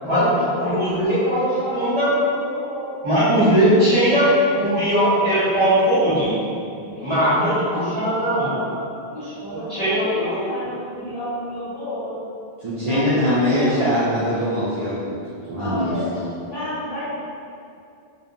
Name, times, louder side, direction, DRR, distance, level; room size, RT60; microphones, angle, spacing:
voice 1, 0.0-3.0 3.4-4.3 6.8-8.8 9.1-12.2 12.7-13.8 15.6-16.1 16.4-17.1, equal, 20° left, -16 dB, 1.0 m, -32 dB
voice 2, 0.6-1.4 1.7-2.1 3.0-6.4 7.0-8.5 9.5-10.4, equal, 30° right, -15 dB, 1.3 m, -19 dB
voice 3, 12.6-15.2 15.5-15.9, equal, 55° right, -11 dB, 0.3 m, -22 dB
2.7 x 2.0 x 2.5 m, 2.5 s
omnidirectional pair, 1.0 m